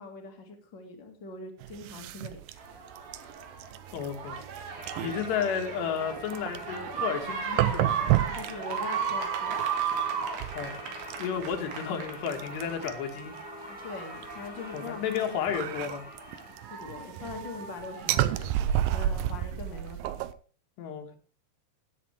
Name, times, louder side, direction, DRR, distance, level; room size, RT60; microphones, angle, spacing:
voice 1, 0.0-2.9 8.3-9.6 13.7-15.4 16.7-20.2, left 4 dB, 40° left, 3 dB, 1.9 m, -42 dB
sound 1, 1.6-13.4 14.2-20.3, right 13 dB, 85° right, 2.0 m, -32 dB
sound 2, 2.6-12.7 13.2-15.7 16.2-19.0 19.9-20.0, right 7 dB, 65° right, 3.7 m, -36 dB
voice 2, 3.9-4.4 5.0-7.9 10.5-10.7 11.2-13.3 14.7-16.0 20.8-21.2, left 7 dB, 85° left, 4 dB, 3.7 m, -32 dB
Singing / Church bell, 4.7-16.6, left 1 dB, 5° right, 1.3 m, -45 dB
16.0 x 8.4 x 3.4 m, 0.38 s
omnidirectional pair, 4.8 m